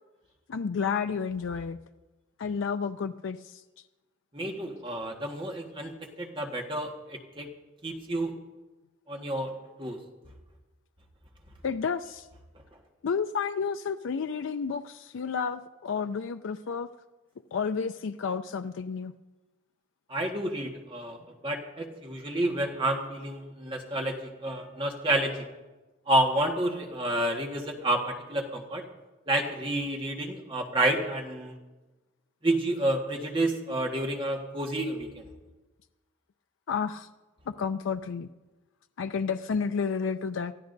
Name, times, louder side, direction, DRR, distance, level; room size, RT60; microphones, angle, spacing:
voice 1, 0.5-1.8 2.4-3.6 11.6-12.3 13.0-16.9 17.5-19.1 36.7-37.1 37.5-38.3 39.0-40.5, left 6 dB, 80° left, 9 dB, 0.4 m, -31 dB
voice 2, 4.3-7.5 7.8-8.3 9.1-9.5 9.8-10.0 20.1-25.4 26.1-28.8 29.3-31.5 32.4-35.2, right 1 dB, 25° right, 1 dB, 1.5 m, -30 dB
27.0 x 14.5 x 2.6 m, 1.2 s
head